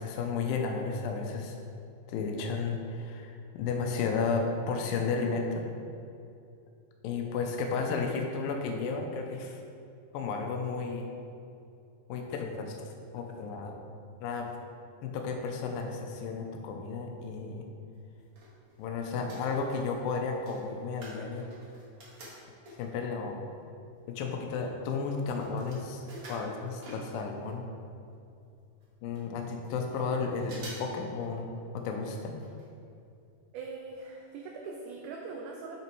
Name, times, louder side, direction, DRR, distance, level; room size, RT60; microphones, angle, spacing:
voice 1, 0.0-1.6 2.1-5.7 7.0-9.6 10.1-11.1 12.1-12.9 13.1-13.8 14.2-14.5 15.0-17.7 18.8-21.5 22.8-23.4 24.1-27.6 29.0-31.5 31.7-32.4, left 4 dB, 85° left, 3 dB, 2.4 m, -33 dB
sound 1, 17.9-18.9 19.2-23.1 23.7-23.8 23.9-27.6 27.8-27.9 28.1-28.2 28.8-28.9 29.1-30.0 30.4-31.0 31.3-31.4 32.4-32.7 33.0-33.1 33.6-33.7 34.0-34.1, right 1 dB, 45° right, 1.6 m, -49 dB
voice 2, 33.5-35.8, right 4 dB, 75° right, 0 dB, 2.0 m, -41 dB
7.2 x 5.8 x 4.5 m, 2.6 s
omnidirectional pair, 4.0 m